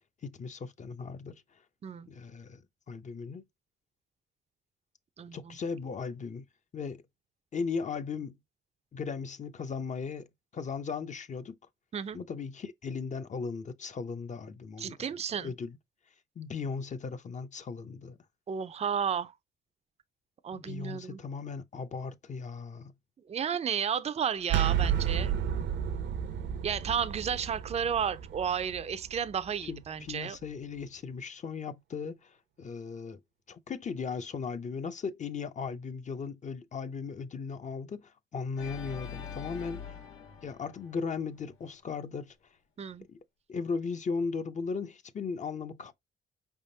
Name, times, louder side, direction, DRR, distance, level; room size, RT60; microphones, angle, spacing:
voice 1, 0.2-1.4 2.1-3.4 5.3-6.5 6.7-7.0 7.5-8.3 8.9-11.6 12.1-15.8 16.4-18.2 20.5-22.9 29.7-33.2 33.5-40.0 40.4-42.4 43.1-43.2 43.5-45.9, left 5 dB, 35° left, 0.7 m, -37 dB
voice 2, 5.2-5.6 11.9-12.2 14.8-15.5 18.5-19.3 20.4-21.2 23.3-25.4 26.6-30.4 42.8-43.1, right 7 dB, 35° right, 0.5 m, -32 dB
sound 1, 24.5-30.2, right 9 dB, 70° right, 0.7 m, -32 dB
Organ, 38.6-41.7, left 7 dB, 85° left, 1.7 m, -44 dB
4.9 x 3.5 x 2.7 m
cardioid pair, 90°, 20 cm